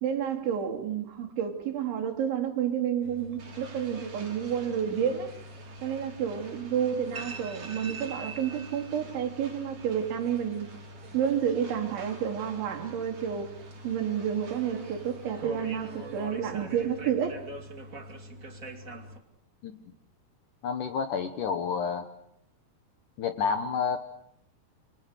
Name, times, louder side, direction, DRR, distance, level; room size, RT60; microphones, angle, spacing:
voice 1, 0.0-5.3 5.8-10.7 11.1-13.5 13.8-17.4, right 8 dB, 85° right, 5.6 m, -30 dB
sound 1, 3.0-19.2, right 2 dB, 25° right, 1.9 m, -44 dB
sound 2, 3.4-16.4, right 4 dB, 55° right, 6.7 m, -51 dB
voice 2, 20.6-22.1 23.2-24.0, left 6 dB, 65° left, 2.2 m, -29 dB
28.5 x 27.0 x 6.8 m
omnidirectional pair, 5.2 m